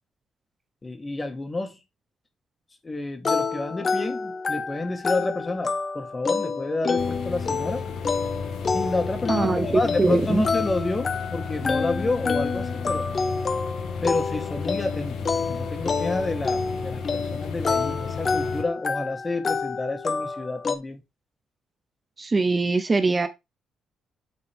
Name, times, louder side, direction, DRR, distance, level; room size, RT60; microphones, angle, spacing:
voice 1, 0.8-1.8 2.8-7.8 8.7-13.1 14.0-21.0, left 2 dB, 25° left, 1.4 m, -29 dB
sound 1, 3.2-20.8, left 4 dB, 40° left, 0.7 m, -28 dB
sound 2, 7.0-18.6, left 5 dB, 75° left, 1.5 m, -33 dB
voice 2, 9.3-10.4 22.2-23.3, right 3 dB, 30° right, 0.5 m, -22 dB
8.7 x 3.9 x 3.4 m
cardioid pair, 90°, 0 cm